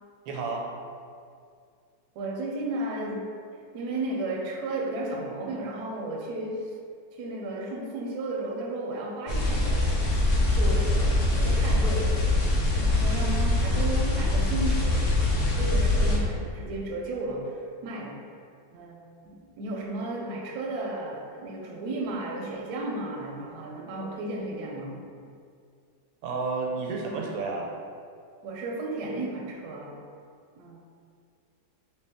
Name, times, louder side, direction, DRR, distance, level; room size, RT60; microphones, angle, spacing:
voice 1, 0.3-0.6 26.2-27.8, right 4 dB, 90° right, -1 dB, 1.3 m, -31 dB
voice 2, 2.2-3.3 3.7-6.7 7.1-10.2 10.5-12.2 12.7-15.1 15.4-18.2 18.7-25.1 28.4-30.0 30.5-30.8, right 2 dB, 70° right, -1 dB, 1.0 m, -34 dB
sound 1, 9.3-16.2, left 2 dB, 60° left, 0.8 m, -23 dB
3.0 x 2.9 x 3.4 m, 2.2 s
omnidirectional pair, 2.0 m